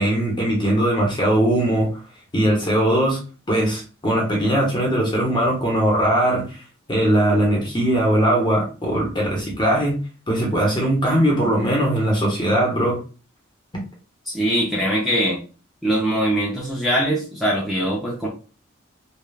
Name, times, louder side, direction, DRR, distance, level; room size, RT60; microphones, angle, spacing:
voice 1, 0.0-1.9 2.3-3.2 3.5-6.6 6.9-10.0 10.3-13.0, right 1 dB, 20° left, -2 dB, 0.8 m, -20 dB
voice 2, 14.3-15.4 15.8-18.3, right 1 dB, ahead, -4 dB, 0.5 m, -22 dB
3.2 x 2.2 x 2.3 m, 0.35 s
head